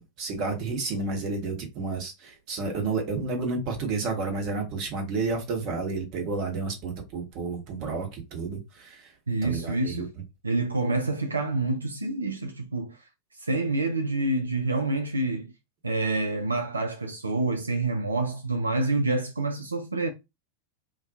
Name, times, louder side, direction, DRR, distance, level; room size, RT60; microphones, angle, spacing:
voice 1, 0.0-9.1 9.4-10.1, right 3 dB, 40° right, 0.9 m, -31 dB
voice 2, 9.3-10.1 10.4-13.0 13.3-15.5 15.8-20.1, right 2 dB, 80° right, 0.3 m, -27 dB
2.3 x 2.2 x 2.6 m
figure-of-eight pair, 90°, 0 cm